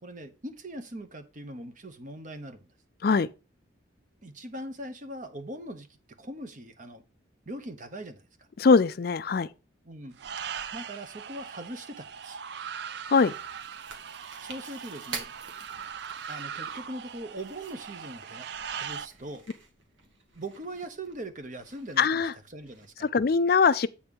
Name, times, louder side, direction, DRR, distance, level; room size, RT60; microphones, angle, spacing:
voice 1, 0.0-2.7 4.2-5.9 6.2-7.0 7.5-8.5 9.8-10.1 10.7-12.4 14.4-15.3 16.3-19.4 20.3-22.1 22.5-23.1, right 1 dB, 40° right, 1.1 m, -41 dB
voice 2, 8.6-9.5 13.1-13.3 22.0-22.3 23.1-23.9, left 5 dB, 50° left, 0.4 m, -21 dB
sound 1, 10.2-19.1, right 7 dB, 55° right, 0.4 m, -40 dB
Chewing mastication, 13.1-22.9, right 5 dB, 75° right, 1.9 m, -48 dB
8.6 x 4.3 x 5.3 m
head